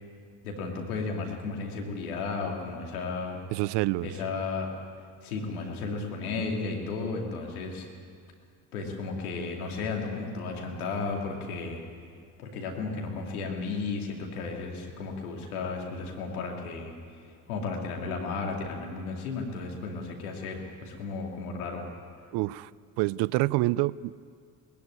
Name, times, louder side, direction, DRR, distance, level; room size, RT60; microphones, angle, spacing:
voice 1, 0.4-3.4 4.0-4.9 5.2-7.9 8.7-11.8 12.4-21.8, left 4 dB, 90° left, 1 dB, 2.7 m, -34 dB
voice 2, 3.5-4.1 22.3-22.7 23.0-24.2, right 19 dB, 70° right, 22 dB, 0.6 m, -27 dB
20.0 x 15.5 x 9.6 m, 2.1 s
hypercardioid pair, 55°, 42 cm